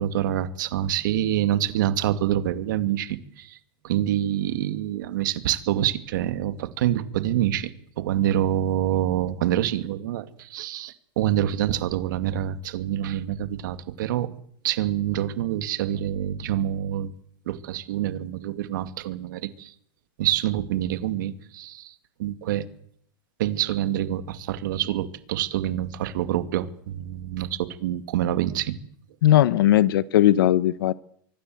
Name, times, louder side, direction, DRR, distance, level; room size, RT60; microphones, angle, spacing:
voice 1, 0.0-3.6 3.8-7.7 8.0-14.3 14.6-17.1 17.5-19.7 20.2-21.9 22.2-22.6 23.4-28.7, right 12 dB, 60° right, 2.3 m, -26 dB
voice 2, 29.2-30.9, left 13 dB, 70° left, 1.0 m, -18 dB
24.5 x 24.0 x 7.9 m
supercardioid pair, 180°, 12 cm